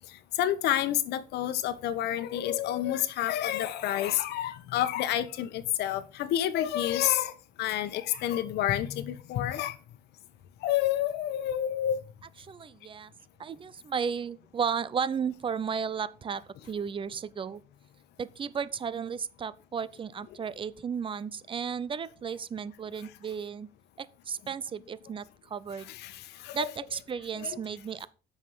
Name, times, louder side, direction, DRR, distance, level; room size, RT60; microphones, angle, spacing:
voice 1, 0.4-7.3 7.6-9.8 10.6-12.0 25.9-26.7 27.4-27.6, left 12 dB, 80° left, 1.1 m, -29 dB
voice 2, 12.4-13.1 13.4-17.6 18.2-23.7 24.0-25.9 26.5-28.1, right 6 dB, 30° right, 0.7 m, -34 dB
8.3 x 6.4 x 5.6 m
cardioid pair, 110°, 17 cm